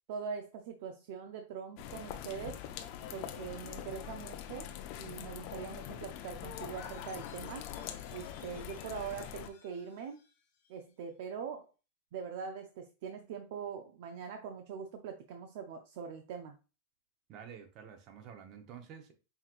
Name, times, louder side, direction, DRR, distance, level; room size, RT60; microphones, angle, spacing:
voice 1, 0.1-2.6 3.1-4.7 5.0-7.7 8.1-10.2 10.7-11.7 12.1-16.6, right 6 dB, 60° right, 0.5 m, -42 dB
sound 1, 1.8-9.5, left 10 dB, 50° left, 0.5 m, -44 dB
Chime, 6.5-11.1, left 6 dB, 65° left, 1.2 m, -61 dB
voice 2, 17.3-19.1, right 8 dB, 40° right, 0.9 m, -49 dB
5.6 x 3.0 x 2.4 m
supercardioid pair, 140°, 0 cm